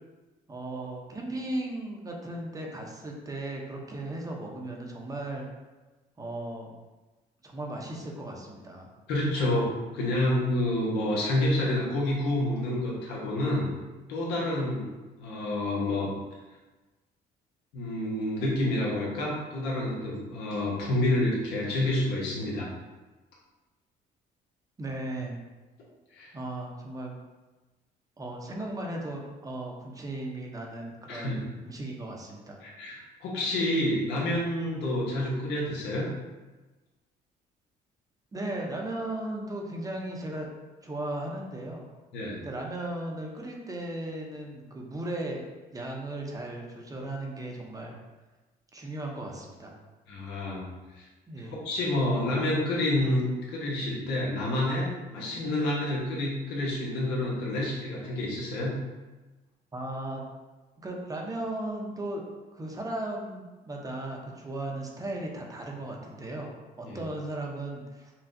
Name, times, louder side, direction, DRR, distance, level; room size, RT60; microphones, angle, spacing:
voice 1, 0.5-5.5 6.2-6.7 7.4-8.9 24.8-25.4 26.3-27.1 28.2-31.4 31.6-32.6 38.3-40.5 40.8-41.9 42.3-45.4 45.7-48.0 48.7-49.8 51.3-51.6 59.7-60.2 60.8-62.2 62.5-68.1, right 1 dB, 20° right, 0 dB, 0.7 m, -36 dB
voice 2, 9.1-13.7 14.1-14.9 15.2-16.1 17.7-22.7 26.1-26.3 31.1-31.5 32.6-36.1 42.1-42.4 50.1-50.7 51.0-51.1 51.6-58.8 66.9-67.0, left 1 dB, 85° left, -4 dB, 1.1 m, -28 dB
5.7 x 2.3 x 2.6 m, 1.2 s
cardioid pair, 110°, 17 cm